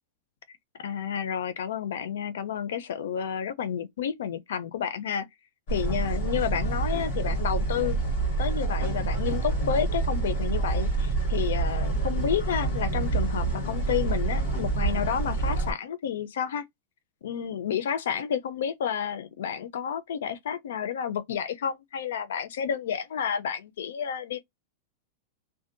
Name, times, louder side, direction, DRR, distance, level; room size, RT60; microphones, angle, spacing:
voice 1, 0.8-5.3 5.7-8.0 8.4-16.6 17.2-24.4, left 8 dB, 90° left, 0.4 m, -30 dB
sound 1, 5.7-15.7, right 3 dB, 45° left, 1.3 m, -27 dB
2.6 x 2.1 x 2.4 m
supercardioid pair, 180°, 0 cm